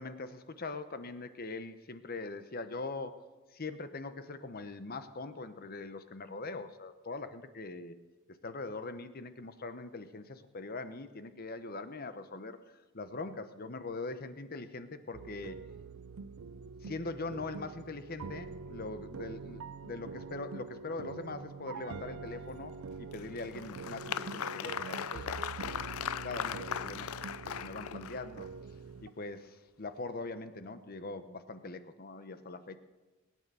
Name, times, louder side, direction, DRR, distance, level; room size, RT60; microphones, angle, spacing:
voice 1, 0.0-3.2 3.5-7.9 8.4-12.6 12.9-15.6 16.8-25.4 26.2-28.5 29.0-32.8, left 3 dB, 45° left, 11 dB, 0.9 m, -42 dB
sound 1, 15.1-29.1, right 4 dB, 85° right, 0.5 m, -45 dB
Applause, 23.1-28.4, left 9 dB, 90° left, 0.4 m, -39 dB
20.0 x 9.4 x 6.9 m, 1.2 s
head